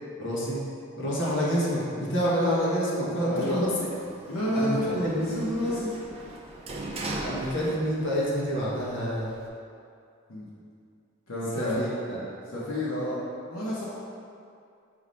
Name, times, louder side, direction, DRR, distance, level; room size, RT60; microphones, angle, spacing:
voice 1, 0.2-0.6 1.0-3.7 4.5-5.3 5.7-5.8 6.9-9.3 11.5-12.2, equal, 60° left, -6 dB, 1.3 m, -28 dB
voice 2, 3.2-3.6 4.3-4.9 5.3-5.9 10.3-10.5 11.3-11.8 12.5-13.2 13.5-13.9, left 1 dB, 80° left, -7 dB, 1.1 m, -29 dB
Sliding door, 3.4-8.2 8.5-9.5, right 2 dB, 30° right, 0.5 m, -39 dB
5.8 x 3.2 x 5.4 m, 2.4 s
head